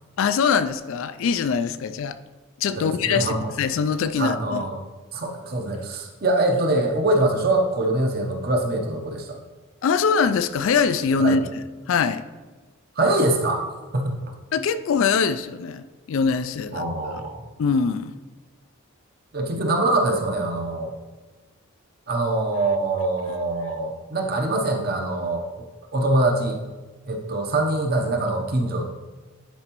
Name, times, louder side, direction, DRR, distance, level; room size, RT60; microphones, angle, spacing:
voice 1, 0.2-2.2 2.6-4.7 9.8-11.5 11.9-12.2 14.5-16.8 17.6-18.1, left 5 dB, 60° left, 12 dB, 0.3 m, -23 dB
voice 2, 2.7-3.5 4.2-4.8 5.1-9.4 11.2-11.4 13.0-13.6 13.9-14.3 16.7-17.4 19.3-21.0 22.1-25.7 25.9-26.6 27.1-28.8, right 2 dB, 45° right, 3 dB, 0.8 m, -24 dB
10.5 x 4.4 x 3.0 m, 1.3 s
head